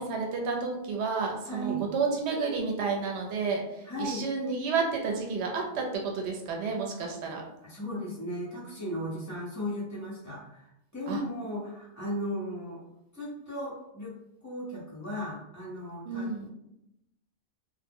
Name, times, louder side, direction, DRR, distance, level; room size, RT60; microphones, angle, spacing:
voice 1, 0.0-7.4 11.1-11.2 16.1-16.5, right 4 dB, 85° right, 1 dB, 0.9 m, -31 dB
voice 2, 1.5-1.8 3.8-4.2 7.6-12.8 13.1-14.1 14.4-16.3, equal, 20° left, -8 dB, 0.8 m, -36 dB
2.2 x 2.0 x 3.5 m, 0.85 s
omnidirectional pair, 1.1 m